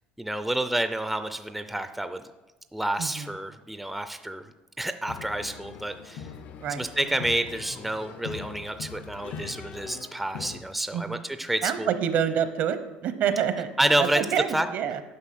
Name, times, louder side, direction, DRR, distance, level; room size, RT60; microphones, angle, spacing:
voice 1, 0.2-2.2 2.7-4.5 4.8-6.3 6.8-11.9 13.8-14.2 14.5-14.7, right 1 dB, 5° right, 9 dB, 0.4 m, -29 dB
voice 2, 3.0-3.3 6.6-6.9 10.9-11.2 11.6-13.7 14.0-15.0, right 8 dB, 60° right, 11 dB, 0.8 m, -27 dB
sound 1, 5.1-10.6, left 6 dB, 60° left, 0.6 m, -41 dB
9.7 x 5.7 x 5.9 m, 1.1 s
cardioid pair, 120°, 3 cm